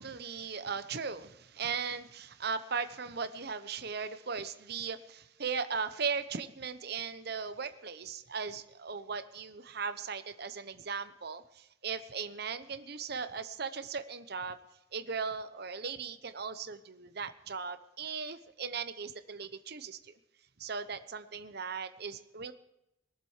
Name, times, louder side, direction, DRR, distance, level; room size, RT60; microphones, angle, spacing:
voice 1, 0.0-14.6 14.9-20.1 20.6-22.5, right 5 dB, 55° right, 11 dB, 0.9 m, -38 dB
22.0 x 7.5 x 4.9 m, 0.87 s
head